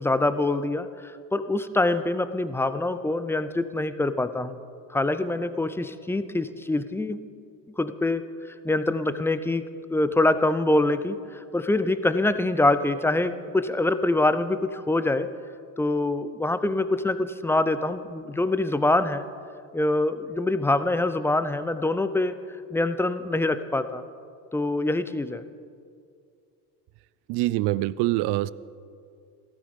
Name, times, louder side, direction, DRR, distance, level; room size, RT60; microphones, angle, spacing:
voice 1, 0.0-4.6 4.9-7.2 7.8-8.2 8.6-9.6 9.9-15.3 15.8-19.2 19.7-22.4 22.7-24.0 24.5-25.4, left 2 dB, 5° left, 12 dB, 0.4 m, -25 dB
voice 2, 27.3-28.5, right 17 dB, 55° right, 20 dB, 0.5 m, -24 dB
15.0 x 12.5 x 5.2 m, 2.4 s
supercardioid pair, 85°, 48 cm